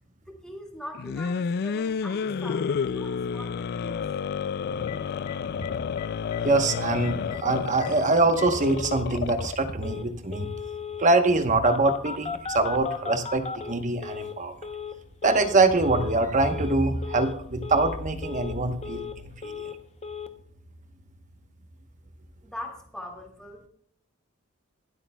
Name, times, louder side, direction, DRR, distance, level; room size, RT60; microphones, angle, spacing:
voice 1, 0.3-4.0 22.4-23.7, left 1 dB, 5° left, 0 dB, 2.1 m, -41 dB
sound 1, 0.9-9.7, left 6 dB, 50° left, 0.3 m, -30 dB
Telephone, 4.9-5.0 5.3-5.4 5.6-5.7 6.0-6.4 6.7-6.8 7.0-7.4 7.8-7.9 8.4-9.1 9.8-10.1 10.3-11.1 11.7-14.4 14.6-15.0 15.2-15.6 15.8-16.2 16.4-16.8 17.0-17.4 17.6-18.0 18.2-19.2 19.4-19.8 20.0-20.3, left 6 dB, 30° left, 0.8 m, -36 dB
voice 2, 6.4-10.5 11.0-14.5 15.2-19.1 19.4-19.6, right 2 dB, 35° right, 7 dB, 1.0 m, -24 dB
24.5 x 8.5 x 2.3 m, 0.66 s
head